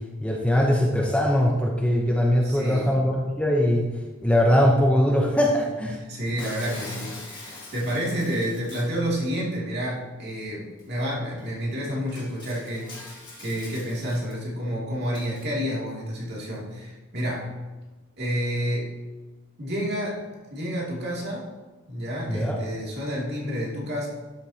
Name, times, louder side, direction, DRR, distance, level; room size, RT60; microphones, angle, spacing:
voice 1, 0.2-3.9 4.2-6.0 22.3-22.6, equal, 5° left, -1 dB, 0.8 m, -21 dB
voice 2, 2.4-3.0 5.9-17.5 18.2-18.9 19.6-20.2 20.5-21.5 21.9-24.1, equal, 55° right, -5 dB, 2.7 m, -29 dB
Shatter, 6.4-9.0 10.8-10.9 11.4-11.5 12.1-14.3 15.1-15.5, left 2 dB, 25° left, 2.1 m, -43 dB
12.0 x 7.3 x 2.9 m, 1.2 s
head